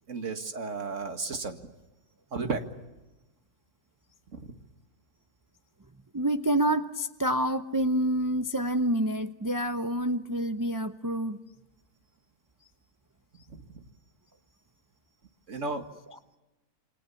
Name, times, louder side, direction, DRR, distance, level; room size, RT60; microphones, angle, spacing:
voice 1, 0.1-1.6 2.3-2.6 4.3-4.5 13.5-13.6 15.5-15.8, right 3 dB, 55° right, 6 dB, 2.3 m, -33 dB
voice 2, 6.1-11.4, right 1 dB, 20° right, 8 dB, 0.6 m, -27 dB
28.5 x 25.5 x 7.1 m, 1.1 s
omnidirectional pair, 1.6 m